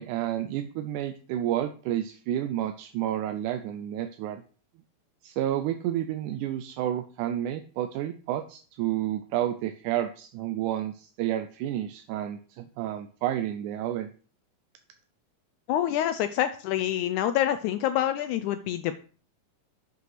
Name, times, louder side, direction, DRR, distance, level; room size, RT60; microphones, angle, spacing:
voice 1, 0.0-4.4 5.2-14.1, right 12 dB, 80° right, 8 dB, 2.0 m, -30 dB
voice 2, 15.7-18.9, left 11 dB, 80° left, 10 dB, 1.8 m, -26 dB
7.9 x 5.5 x 5.8 m, 0.41 s
omnidirectional pair, 3.9 m